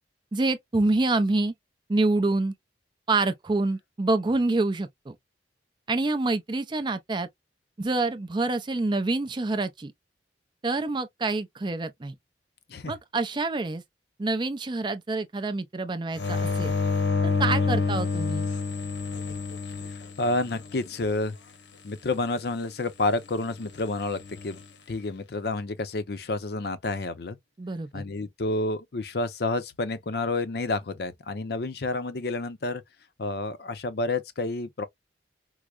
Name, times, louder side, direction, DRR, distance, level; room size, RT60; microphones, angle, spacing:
voice 1, 0.3-1.5 1.9-2.5 3.1-5.2 5.9-7.3 7.8-9.9 10.6-12.1 12.9-13.8 14.2-16.8 17.2-18.5 27.6-28.0, right 2 dB, 25° right, 0.4 m, -27 dB
sound 1, 16.2-20.8 24.1-24.6, left 4 dB, 80° left, 0.9 m, -28 dB
voice 2, 20.2-21.4 21.8-24.6 24.9-27.4 27.9-32.8 33.2-34.8, left 2 dB, 60° left, 0.6 m, -29 dB
4.6 x 2.0 x 2.3 m
head